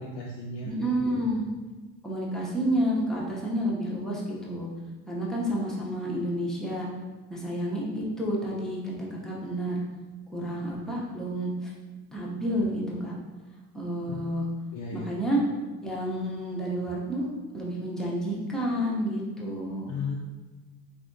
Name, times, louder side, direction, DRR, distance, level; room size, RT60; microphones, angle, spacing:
voice 1, 0.0-0.8 14.1-14.2 14.7-15.1 19.9-20.2, left 4 dB, 60° left, -3 dB, 0.5 m, -35 dB
voice 2, 0.6-1.4 2.0-4.7 5.1-6.9 7.3-9.8 10.3-11.7 12.1-13.1 13.7-14.5 14.9-15.4 15.8-17.3 17.5-19.9, equal, ahead, -5 dB, 0.7 m, -30 dB
3.4 x 2.7 x 2.6 m, 1.3 s
supercardioid pair, 100°, 37 cm